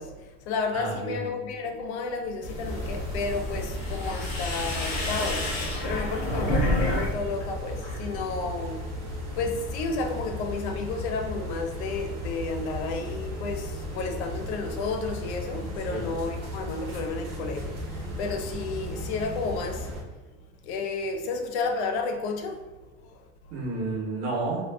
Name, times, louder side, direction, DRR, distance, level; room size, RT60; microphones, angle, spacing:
voice 1, 0.0-9.0 9.3-23.5, left 4 dB, 80° left, 0.5 m, -32 dB
voice 2, 0.7-1.2 6.1-6.5 15.9-16.1 23.5-24.7, right 2 dB, 75° right, 1.0 m, -31 dB
sound 1, 2.4-7.1 7.4-8.0, left 1 dB, 25° left, 0.5 m, -29 dB
sound 2, 2.6-20.0, equal, 30° right, 0.5 m, -36 dB
2.5 x 2.4 x 2.2 m
cardioid pair, 175°, 33 cm